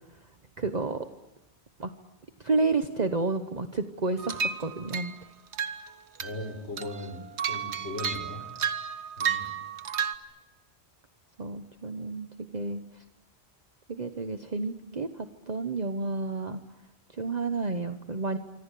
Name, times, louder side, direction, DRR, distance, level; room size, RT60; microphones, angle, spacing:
voice 1, 0.6-1.1 1.8-1.9 2.4-5.1 11.4-12.8 13.9-16.6 17.1-18.4, right 3 dB, 40° right, 7 dB, 1.2 m, -30 dB
sound 1, 4.2-5.1 5.5-5.9 6.2-6.4 6.8-10.2, right 7 dB, 85° right, 1.5 m, -32 dB
voice 2, 6.2-7.2 7.5-8.5 9.2-9.5, left 2 dB, 85° left, 6 dB, 5.4 m, -38 dB
26.0 x 25.5 x 8.5 m, 1.0 s
omnidirectional pair, 1.1 m